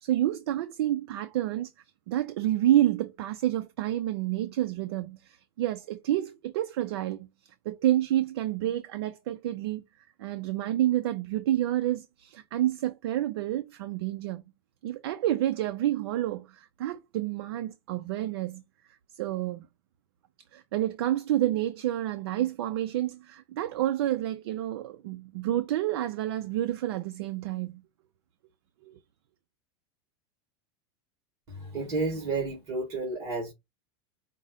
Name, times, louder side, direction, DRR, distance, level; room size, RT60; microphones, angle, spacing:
voice 1, 0.0-1.7 2.1-9.8 10.2-14.4 14.8-18.6 19.1-19.7 20.5-27.8 28.8-29.0, right 13 dB, 70° right, 0.5 m, -29 dB
voice 2, 31.5-33.5, right 3 dB, 25° right, 2.3 m, -31 dB
5.1 x 2.1 x 3.7 m
supercardioid pair, 175°, 14 cm